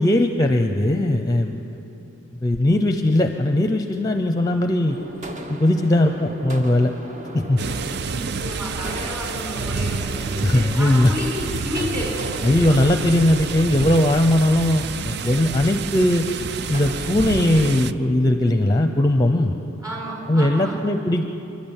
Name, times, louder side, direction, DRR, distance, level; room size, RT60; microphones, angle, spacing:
voice 1, 0.0-1.8 2.4-5.0 5.5-6.9 7.3-7.6 10.4-11.1 12.4-16.3 16.7-19.6 20.3-21.2, left 1 dB, 20° left, 6 dB, 0.7 m, -19 dB
sound 1, 4.9-17.8, right 1 dB, 35° right, 1.4 m, -38 dB
sound 2, 7.6-17.9, right 5 dB, 55° right, 0.5 m, -29 dB
voice 2, 8.0-12.8 19.8-20.8, equal, 15° right, -3 dB, 6.2 m, -31 dB
28.0 x 11.5 x 9.0 m, 2.8 s
head